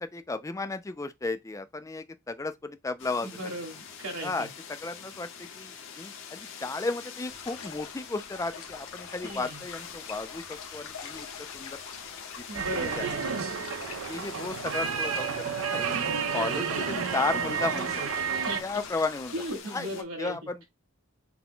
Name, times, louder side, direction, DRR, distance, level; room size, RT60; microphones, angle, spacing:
voice 1, 0.0-3.4 4.2-5.3 5.6-11.3 11.5-11.8 12.4-12.5 13.0-13.1 13.8-15.3 15.7-15.9 16.3-18.0 18.6-19.3 19.7-19.9 20.2-20.6, left 3 dB, 15° left, 0.3 m, -34 dB
sound 1, 3.0-20.0, left 6 dB, 60° left, 0.9 m, -45 dB
voice 2, 3.3-4.5 9.2-9.6 12.5-13.4 16.3-16.6 18.3-18.6 19.3-20.4, right 1 dB, 85° right, 1.7 m, -36 dB
sound 2, 7.3-19.6, left 6 dB, 85° left, 1.1 m, -45 dB
sound 3, 12.5-18.6, right 6 dB, 65° right, 0.5 m, -31 dB
5.9 x 2.2 x 3.7 m
head